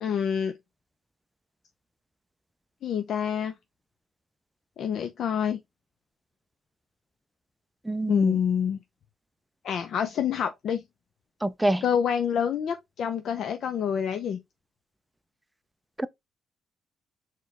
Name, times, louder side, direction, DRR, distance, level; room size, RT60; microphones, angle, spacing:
voice 1, 0.0-0.5 2.8-3.5 4.8-5.6 8.1-8.8 9.6-10.8 11.8-14.4, left 8 dB, 65° left, 0.5 m, -27 dB
voice 2, 7.9-8.3 11.4-11.8 16.0-16.1, right 1 dB, 10° right, 0.3 m, -26 dB
4.6 x 3.0 x 3.2 m
cardioid pair, 90°, 0 cm